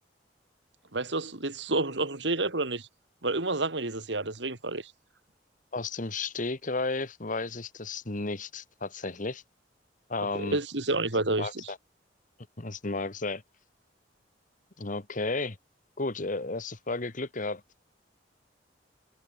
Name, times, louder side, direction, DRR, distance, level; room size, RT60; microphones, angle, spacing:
voice 1, 0.9-2.9 3.2-4.9 10.4-11.7, right 2 dB, 75° right, 2.7 m, -29 dB
voice 2, 5.7-9.4 10.1-10.6 11.4-11.8 12.6-13.4 14.8-15.6 16.0-17.6, left 3 dB, 45° left, 1.6 m, -33 dB
head